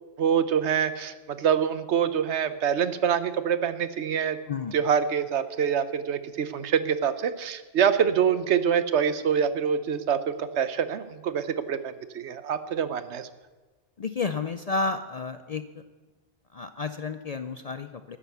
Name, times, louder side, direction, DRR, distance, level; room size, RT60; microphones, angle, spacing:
voice 1, 0.2-4.4 4.7-13.3, right 8 dB, 75° right, 12 dB, 1.1 m, -25 dB
voice 2, 14.0-15.6 16.5-18.2, left 4 dB, 50° left, 10 dB, 0.4 m, -31 dB
12.5 x 9.9 x 6.9 m, 1.2 s
omnidirectional pair, 1.2 m